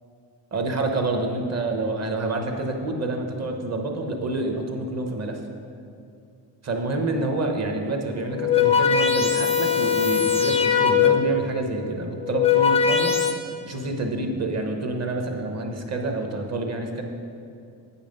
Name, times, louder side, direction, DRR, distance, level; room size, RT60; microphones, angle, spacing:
voice 1, 0.5-5.4 6.6-13.3 13.6-17.0, right 2 dB, 35° right, 3 dB, 0.9 m, -28 dB
sound 1, 8.2-11.4 12.1-13.3, left 7 dB, 15° left, 0.4 m, -20 dB
8.6 x 5.7 x 5.3 m, 2.5 s
cardioid pair, 140°, 47 cm